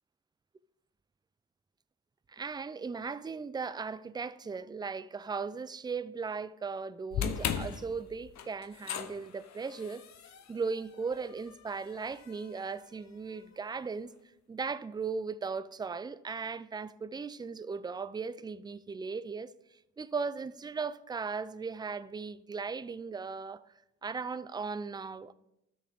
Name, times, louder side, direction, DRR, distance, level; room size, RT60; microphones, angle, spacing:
voice 1, 2.3-10.0 10.5-14.1 14.5-19.5 20.0-23.6 24.0-25.3, right 5 dB, 15° right, 0.3 m, -37 dB
sound 1, 7.1-13.4, left 8 dB, 65° left, 0.9 m, -39 dB
13.0 x 6.1 x 3.5 m
cardioid pair, 90°, 30 cm